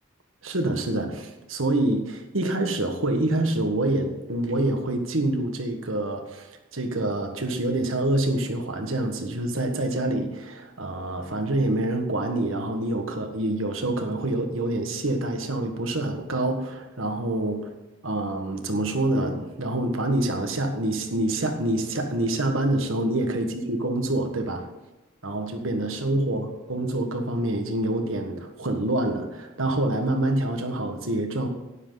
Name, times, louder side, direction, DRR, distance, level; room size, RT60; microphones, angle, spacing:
voice 1, 0.4-17.7 18.0-24.7 25.2-31.5, right 1 dB, 80° right, 5 dB, 1.6 m, -26 dB
12.5 x 10.0 x 4.0 m, 0.99 s
head